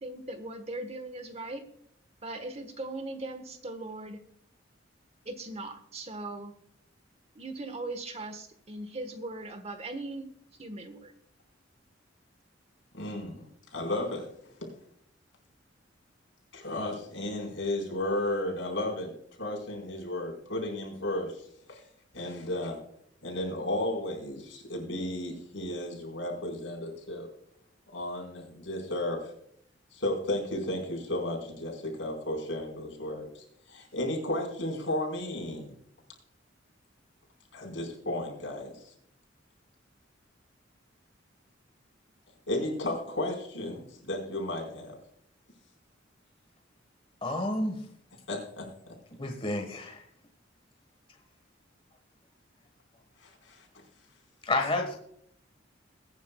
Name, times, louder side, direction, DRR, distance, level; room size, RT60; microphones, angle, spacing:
voice 1, 0.0-1.6 2.2-4.2 5.2-6.5 7.3-10.3 10.6-11.1, right 2 dB, 35° right, 8 dB, 1.3 m, -39 dB
voice 2, 12.9-14.3 14.6-14.7 16.5-19.1 19.4-21.8 22.1-22.8 23.2-27.3 27.9-29.3 29.9-35.8 37.5-38.9 42.5-45.0 48.3-48.7 53.2-53.7, left 1 dB, 75° left, 0 dB, 4.4 m, -34 dB
voice 3, 47.2-47.8 49.2-50.0 54.5-55.0, left 2 dB, 30° left, 3 dB, 1.4 m, -29 dB
21.0 x 9.7 x 2.3 m, 0.68 s
head